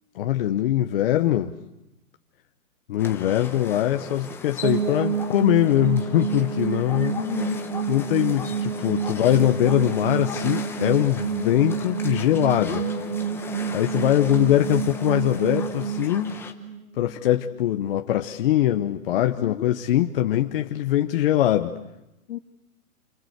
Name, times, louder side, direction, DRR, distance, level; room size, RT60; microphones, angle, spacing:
voice 1, 0.1-1.5 2.9-7.2 7.9-12.8 13.7-16.4 17.0-21.7, left 12 dB, 40° left, 5 dB, 1.2 m, -22 dB
sound 1, 3.0-16.5, left 5 dB, 5° left, 1.1 m, -39 dB
sound 2, 4.6-17.5, right 6 dB, 40° right, 2.1 m, -29 dB
voice 2, 7.1-7.6 12.6-13.3 19.2-19.7 22.3-22.4, left 11 dB, 60° left, 9 dB, 2.0 m, -34 dB
29.0 x 24.5 x 8.1 m, 0.91 s
hypercardioid pair, 160°, 44 cm